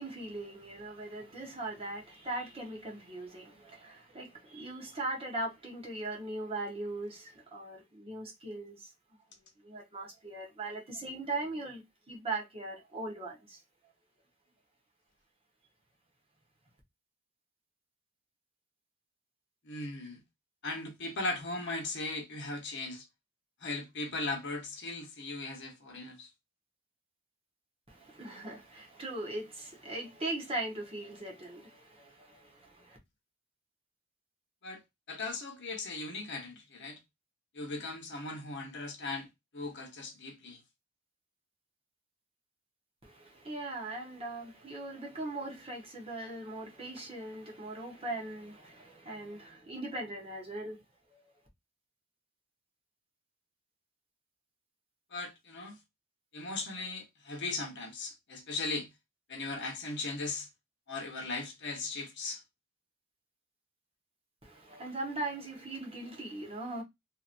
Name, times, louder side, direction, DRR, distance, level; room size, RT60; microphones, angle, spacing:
voice 1, 0.0-8.9 9.6-13.6 27.9-33.0 43.0-50.8 64.4-66.8, right 2 dB, 30° right, 1.0 m, -40 dB
voice 2, 19.6-20.2 20.6-23.0 23.6-26.3 34.6-34.8 35.1-37.0 37.5-39.3 39.5-40.6 55.1-55.8 56.3-58.9 59.3-60.5 60.9-62.4, left 3 dB, 60° left, 1.0 m, -38 dB
3.0 x 2.7 x 2.5 m
head